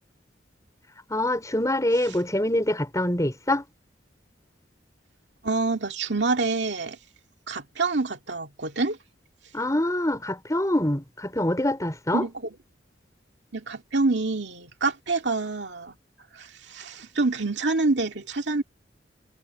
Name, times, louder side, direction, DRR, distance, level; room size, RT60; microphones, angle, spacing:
voice 1, 1.1-3.6 9.5-12.3, left 1 dB, 20° left, 5.2 m, -25 dB
voice 2, 5.4-7.0 7.5-9.0 12.1-12.5 13.5-15.9 16.3-18.6, right 3 dB, 65° right, 2.4 m, -27 dB
head